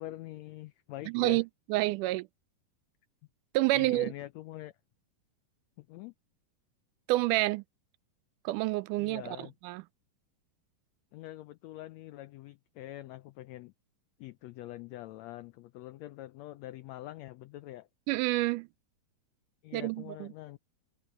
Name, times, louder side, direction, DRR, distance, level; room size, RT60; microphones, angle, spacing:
voice 1, 0.0-1.4 3.7-4.7 5.8-6.1 9.0-9.5 11.1-13.7 14.2-17.9 19.6-20.6, left 15 dB, 90° left, 1.5 m, -44 dB
voice 2, 1.1-2.3 3.5-4.1 7.1-7.6 8.5-9.8 18.1-18.7 19.7-20.3, right 19 dB, 80° right, 2.0 m, -29 dB
omnidirectional pair, 3.7 m